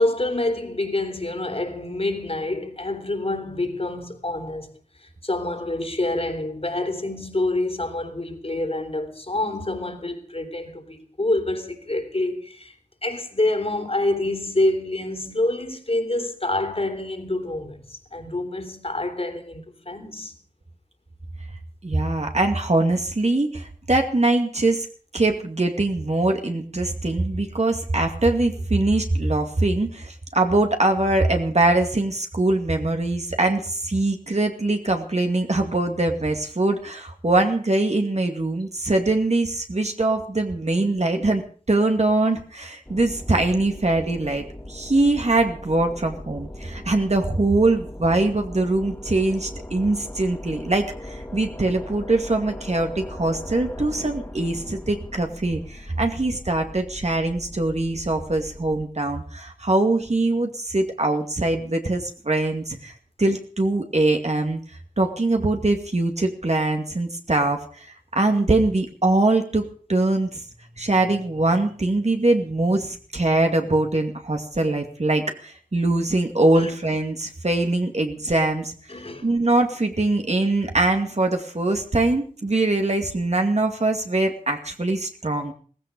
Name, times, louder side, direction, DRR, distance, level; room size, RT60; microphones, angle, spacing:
voice 1, 0.0-4.7 5.2-12.7 13.0-20.3 76.6-76.7 78.9-79.3, left 2 dB, 45° left, 3.4 m, -27 dB
voice 2, 21.8-24.9 25.1-41.4 41.7-62.9 63.2-64.6 65.0-70.4 70.8-78.7 79.2-85.5, right 2 dB, 50° right, 2.3 m, -22 dB
sound 1, 42.9-58.9, left 1 dB, 15° left, 2.5 m, -39 dB
17.5 x 15.5 x 5.3 m
wide cardioid pair, 55°, 14 cm